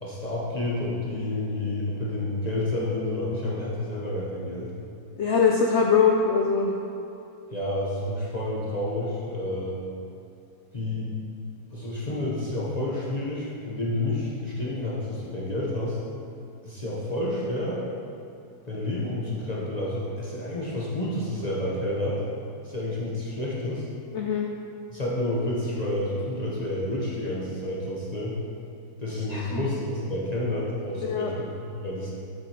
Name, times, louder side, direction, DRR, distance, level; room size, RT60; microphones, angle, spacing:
voice 1, 0.0-4.7 7.5-9.8 10.7-11.1 11.7-16.0 16.6-17.8 18.6-22.2 22.6-23.8 24.9-28.3 29.0-32.1, left 1 dB, 30° left, -6 dB, 0.9 m, -29 dB
voice 2, 5.2-6.7 24.1-24.5 29.1-29.6 31.0-31.3, left 5 dB, 85° left, 0 dB, 0.6 m, -23 dB
8.2 x 7.4 x 2.9 m, 2.7 s
omnidirectional pair, 1.8 m